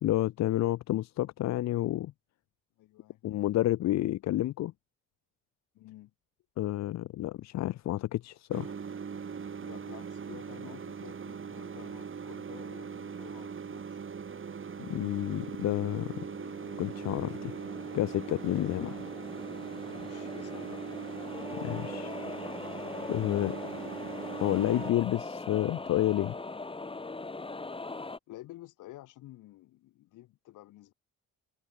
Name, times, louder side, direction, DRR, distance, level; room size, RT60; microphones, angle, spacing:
voice 1, 0.0-2.1 3.2-4.7 6.6-8.7 14.8-16.3 16.8-17.5 17.9-19.0 21.5-22.2 23.1-23.6 24.4-26.4, left 14 dB, 65° left, 0.6 m, -30 dB
voice 2, 2.8-3.2 5.7-6.1 9.6-14.0 19.9-20.8 28.3-30.9, left 16 dB, 90° left, 2.9 m, -50 dB
sound 1, 8.5-24.9, right 6 dB, 40° right, 5.4 m, -40 dB
sound 2, 15.9-28.2, left 3 dB, 15° left, 2.0 m, -42 dB
cardioid pair, 90°, 30 cm